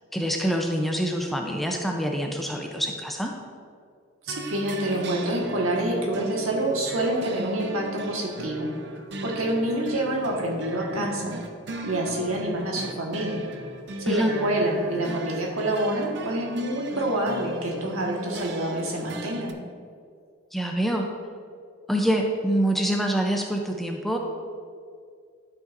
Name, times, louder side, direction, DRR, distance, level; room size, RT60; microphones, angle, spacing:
voice 1, 0.1-3.3 14.1-14.3 20.5-21.1 21.9-24.2, equal, ahead, 1 dB, 0.4 m, -25 dB
voice 2, 4.2-8.7 9.2-11.4 11.8-13.4 14.0-19.5, right 1 dB, 85° right, -1 dB, 1.4 m, -27 dB
sound 1, 4.3-19.5, right 3 dB, 55° right, 0.5 m, -39 dB
12.0 x 5.6 x 2.5 m, 2.2 s
head